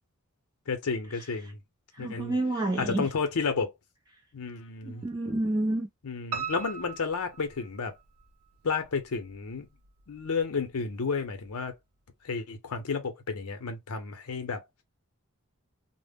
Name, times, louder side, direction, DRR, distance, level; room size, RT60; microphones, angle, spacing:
voice 1, 0.7-1.6 2.0-2.4 2.8-3.7 4.3-5.0 6.0-7.9 8.6-9.7 10.1-11.7 12.2-14.6, left 5 dB, 75° left, 0.6 m, -31 dB
voice 2, 2.0-3.1 4.9-5.9, right 2 dB, 20° right, 0.5 m, -29 dB
Piano, 6.3-8.2 8.7-9.5 9.8-9.9 10.4-10.5 10.7-10.8, right 6 dB, 80° right, 0.5 m, -38 dB
2.1 x 2.0 x 3.4 m
head